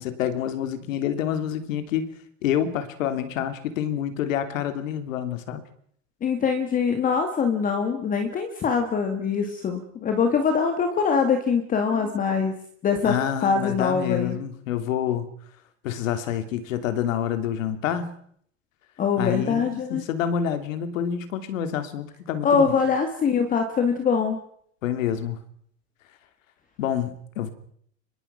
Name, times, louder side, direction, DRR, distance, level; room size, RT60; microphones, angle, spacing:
voice 1, 0.0-2.1 2.4-5.6 13.0-15.3 15.8-18.1 19.2-22.7 24.8-25.4 26.8-27.5, left 9 dB, 80° left, 10 dB, 3.1 m, -27 dB
voice 2, 6.2-13.2 13.4-14.4 19.0-20.0 22.4-24.4, left 6 dB, 20° left, 6 dB, 2.0 m, -23 dB
25.5 x 21.5 x 5.9 m, 0.66 s
supercardioid pair, 160°, 39 cm